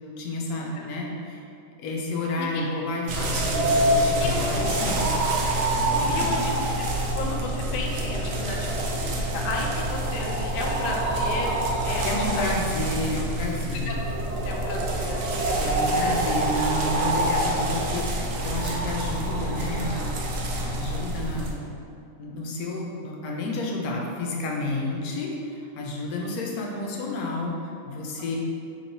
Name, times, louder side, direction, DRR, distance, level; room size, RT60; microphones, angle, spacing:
voice 1, 0.0-1.4 1.8-5.1 5.7-6.3 12.0-13.9 15.3-21.6 22.2-28.4, left 2 dB, 90° left, 0 dB, 1.1 m, -31 dB
voice 2, 0.7-1.0 2.4-2.7 4.2-4.4 5.9-11.5 11.8-12.4 13.1-13.2 13.7-14.0 14.5-16.2 26.3-26.4, left 2 dB, 70° left, -1 dB, 0.5 m, -34 dB
sound 1, 3.1-21.5, right 1 dB, 70° right, 0.9 m, -26 dB
3.1 x 2.9 x 4.0 m, 2.4 s
omnidirectional pair, 1.5 m